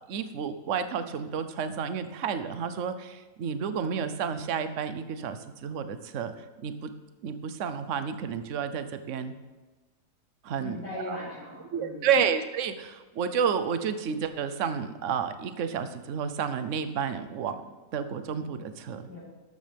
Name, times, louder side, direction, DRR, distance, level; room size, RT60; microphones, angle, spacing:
voice 1, 0.0-6.3 6.6-6.9 7.2-9.3 10.4-11.2 11.7-17.6 17.9-19.0, right 7 dB, 55° right, 10 dB, 1.1 m, -31 dB
voice 2, 10.6-12.1 19.0-19.2, left 1 dB, 40° left, -12 dB, 5.4 m, -39 dB
14.0 x 12.0 x 3.5 m, 1.2 s
omnidirectional pair, 1.7 m